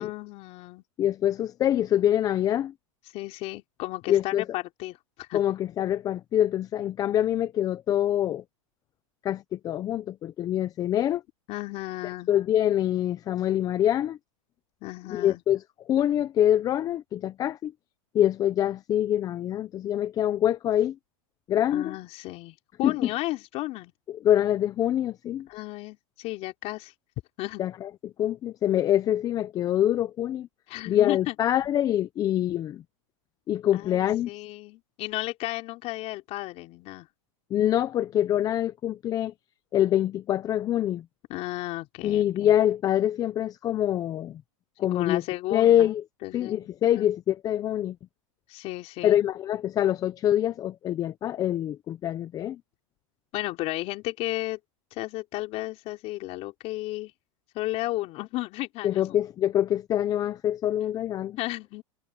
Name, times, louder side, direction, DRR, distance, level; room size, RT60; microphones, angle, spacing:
voice 1, 0.0-0.8 3.1-5.4 11.5-12.3 14.8-15.4 21.7-23.9 25.5-26.9 27.4-27.6 30.7-31.4 33.7-37.1 41.3-42.5 44.9-45.9 46.2-46.7 46.9-47.1 48.5-49.2 53.3-54.6 54.9-57.1 57.5-59.2 61.4-61.8, left 18 dB, 35° left, 3.8 m, -34 dB
voice 2, 1.0-2.7 4.1-4.4 5.3-8.4 9.2-11.2 12.3-14.2 15.1-15.6 15.9-17.7 18.1-20.9 21.5-21.9 22.8-22.9 24.2-25.5 27.6-30.5 30.9-32.8 33.5-34.3 37.5-39.3 39.7-41.0 42.0-44.4 44.8-45.2 45.5-46.0 46.3-48.0 49.0-52.6 58.8-61.4, left 11 dB, 20° left, 0.6 m, -25 dB
supercardioid pair, 150°, 18 cm